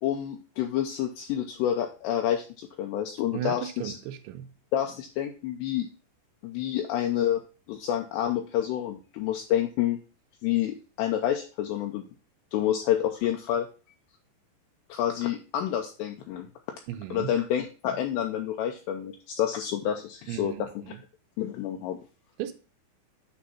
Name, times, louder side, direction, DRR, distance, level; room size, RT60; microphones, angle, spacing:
voice 1, 0.0-3.9 4.7-5.9 6.4-7.4 7.7-10.0 10.4-12.0 12.5-13.7 14.9-16.5 17.1-20.7 21.4-22.0, left 11 dB, 80° left, 2.6 m, -28 dB
voice 2, 3.3-4.5 16.9-17.3 20.3-21.0 22.4-22.5, right 11 dB, 80° right, 3.0 m, -35 dB
8.7 x 3.5 x 5.6 m
omnidirectional pair, 5.4 m